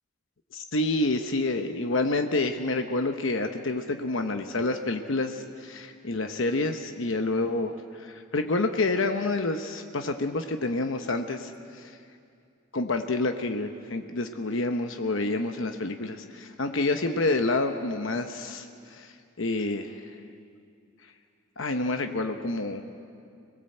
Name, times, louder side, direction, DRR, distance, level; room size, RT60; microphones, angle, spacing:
voice 1, 0.5-12.0 12.7-20.1 21.6-22.8, left 2 dB, 65° left, 6 dB, 1.0 m, -28 dB
26.0 x 18.5 x 7.8 m, 2.4 s
head